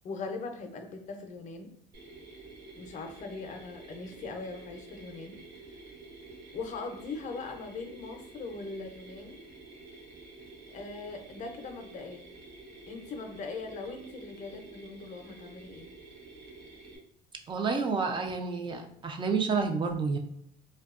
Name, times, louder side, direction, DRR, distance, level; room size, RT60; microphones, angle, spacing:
voice 1, 0.0-1.7 2.8-5.4 6.5-9.4 10.7-12.3 12.9-15.9, left 4 dB, 45° left, 5 dB, 0.5 m, -40 dB
Mechanisms, 1.9-17.0, right 3 dB, 90° right, 0.8 m, -49 dB
voice 2, 17.5-20.2, right 4 dB, 30° right, 4 dB, 0.4 m, -29 dB
2.6 x 2.2 x 2.4 m, 0.72 s
cardioid pair, 110°, 17 cm